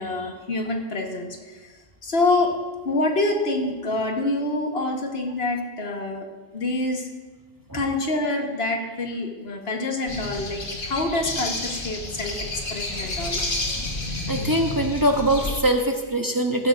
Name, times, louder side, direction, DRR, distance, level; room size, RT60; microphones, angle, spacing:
voice 1, 0.0-1.7 2.0-2.5 2.8-6.3 6.5-7.1 7.7-13.4, left 2 dB, 80° left, 3 dB, 1.6 m, -26 dB
sound 1, 10.1-15.6, left 2 dB, 60° left, 1.6 m, -30 dB
voice 2, 14.3-16.7, right 1 dB, 20° right, 3 dB, 0.8 m, -22 dB
16.0 x 12.5 x 2.5 m, 1.3 s
omnidirectional pair, 1.0 m